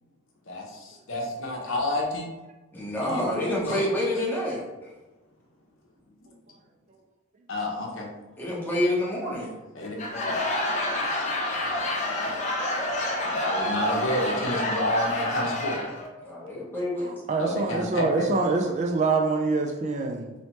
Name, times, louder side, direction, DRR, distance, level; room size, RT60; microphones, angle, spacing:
voice 1, 0.5-2.3 3.0-3.3 3.6-3.8 7.5-8.1 9.7-10.2 13.2-15.8 17.4-18.3, left 1 dB, 60° left, 0 dB, 0.8 m, -30 dB
voice 2, 2.7-4.9 8.4-9.6 16.2-17.1, left 1 dB, 10° left, -6 dB, 1.0 m, -28 dB
Laughter / Crowd, 9.8-16.1, left 1 dB, 30° left, 0.6 m, -28 dB
voice 3, 17.0-20.3, right 3 dB, 30° right, 2 dB, 0.3 m, -25 dB
4.1 x 3.2 x 3.1 m, 1.1 s
head